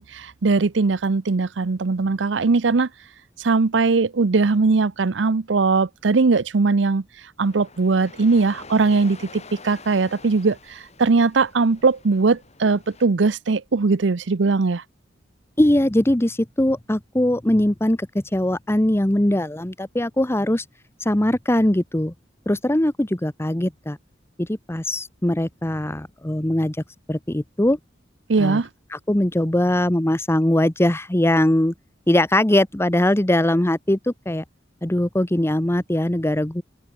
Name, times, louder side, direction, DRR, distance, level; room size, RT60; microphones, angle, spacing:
voice 1, 0.0-2.9 3.4-7.0 7.4-14.8 28.3-28.7, right 4 dB, 80° right, 0.7 m, -20 dB
sound 1, 7.4-13.1, left 3 dB, 40° left, 7.1 m, -46 dB
voice 2, 15.6-20.6 21.0-22.1 22.5-24.0 24.4-26.8 27.1-27.8 28.4-28.6 28.9-31.7 32.1-34.4 34.8-36.6, left 1 dB, 15° left, 0.9 m, -21 dB
open air
head